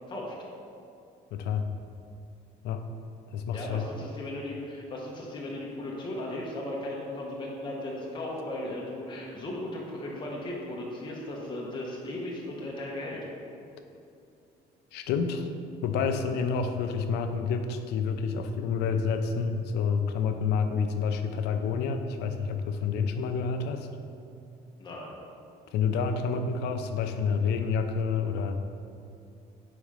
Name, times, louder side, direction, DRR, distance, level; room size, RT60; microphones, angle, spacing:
voice 1, 1.3-1.7 2.6-2.8 3.3-3.9 14.9-15.5 15.8-23.9 25.7-28.5, left 5 dB, 80° left, 7 dB, 0.5 m, -28 dB
voice 2, 3.5-13.2 24.8-25.2, left 1 dB, 30° left, -3 dB, 0.9 m, -36 dB
4.9 x 4.2 x 4.9 m, 2.6 s
cardioid pair, 110°, 17 cm